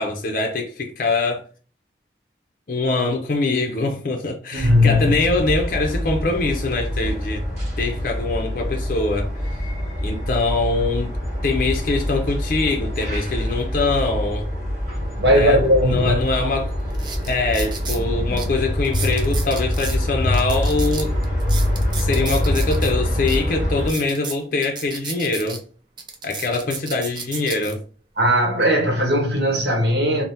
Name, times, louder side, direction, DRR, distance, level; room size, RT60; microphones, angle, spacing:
voice 1, 0.0-1.4 2.7-7.5 7.8-9.3 10.0-11.2 11.4-14.5 15.3-15.6 15.8-16.7 17.2-21.2 22.0-25.6 26.2-27.8, left 3 dB, 50° left, 0.4 m, -23 dB
sound 1, 4.5-23.9, left 1 dB, 40° right, 1.1 m, -25 dB
voice 2, 4.5-5.1 15.1-16.2 28.2-30.2, equal, 70° right, 0.9 m, -18 dB
sound 2, 16.3-16.4 16.9-18.0 18.4-18.5 18.8-20.0 20.3-22.9 23.3-23.4 23.8-25.6 26.0-27.7 28.4-28.6, right 5 dB, 25° right, 0.3 m, -33 dB
2.7 x 2.0 x 3.3 m
head